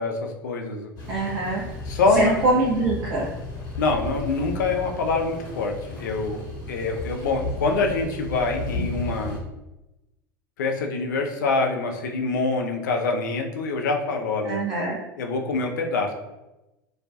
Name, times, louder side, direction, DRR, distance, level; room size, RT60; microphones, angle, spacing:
voice 1, 0.0-0.9 1.9-2.3 3.8-9.4 10.6-14.6 15.2-16.1, left 3 dB, 65° left, 3 dB, 0.4 m, -25 dB
sound 1, 1.0-9.4, left 2 dB, 40° left, 0.8 m, -34 dB
voice 2, 1.1-1.6 2.2-3.3 14.4-15.0, right 2 dB, 45° right, -5 dB, 0.5 m, -23 dB
2.3 x 2.2 x 2.4 m, 0.97 s
figure-of-eight pair, 80°, 11 cm